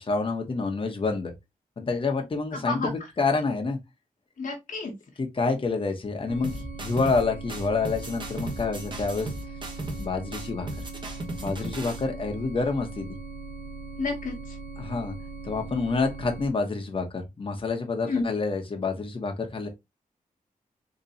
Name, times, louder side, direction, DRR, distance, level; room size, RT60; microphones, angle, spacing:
voice 1, 0.0-1.3 1.8-2.8 3.2-3.8 5.2-9.3 10.0-10.7 11.4-13.2 14.8-15.1 15.4-19.7, left 4 dB, 35° left, 1.0 m, -28 dB
voice 2, 2.5-2.9 4.4-4.9 14.0-14.6 18.1-18.3, left 3 dB, 65° left, 1.2 m, -30 dB
sound 1, 6.3-16.5, right 3 dB, 85° right, 1.1 m, -40 dB
sound 2, 6.4-7.2 7.5-10.1 10.3-12.0, right 1 dB, 35° right, 1.1 m, -36 dB
4.0 x 2.9 x 2.8 m
wide cardioid pair, 120°, 15 cm